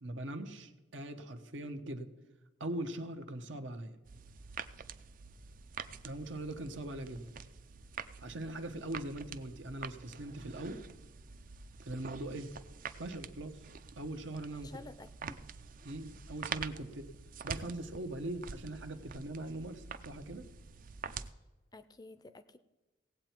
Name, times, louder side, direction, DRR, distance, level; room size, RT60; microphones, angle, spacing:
voice 1, 0.0-2.1 2.6-3.9 6.0-7.2 8.2-10.8 11.8-12.5 13.0-13.6 14.0-14.8 15.2-15.4 15.8-17.1 17.4-20.5, right 1 dB, 80° right, 1.0 m, -41 dB
sound 1, 4.0-21.3, right 6 dB, 45° right, 0.4 m, -46 dB
voice 2, 14.6-15.4 21.1-21.2 21.7-22.6, left 2 dB, 20° left, 0.4 m, -51 dB
17.5 x 8.1 x 4.5 m
head